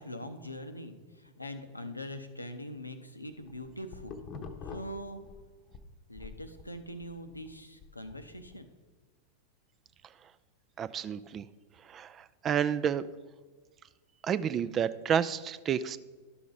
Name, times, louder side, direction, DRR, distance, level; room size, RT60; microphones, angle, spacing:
voice 1, 0.0-4.2 4.6-5.2 6.1-8.7, equal, 85° left, 8 dB, 0.6 m, -42 dB
sound 1, 3.3-5.8 6.2-8.5, left 5 dB, 30° left, 0.8 m, -46 dB
voice 2, 10.8-11.5 11.9-13.0 14.2-16.0, right 8 dB, 25° right, 16 dB, 0.3 m, -30 dB
11.5 x 5.9 x 3.9 m, 1.3 s
figure-of-eight pair, 90°, 0 cm